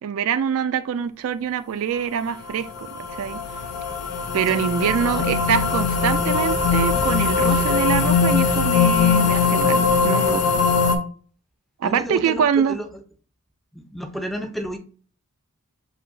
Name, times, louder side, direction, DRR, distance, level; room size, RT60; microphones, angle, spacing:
voice 1, 0.0-3.4 4.3-10.4 11.8-12.8, right 7 dB, 65° right, 0.3 m, -24 dB
sound 1, 2.5-11.0, left 5 dB, 85° left, 0.7 m, -21 dB
voice 2, 4.5-5.3 11.8-12.9 13.7-14.8, equal, ahead, 0.5 m, -32 dB
6.0 x 2.7 x 2.6 m
head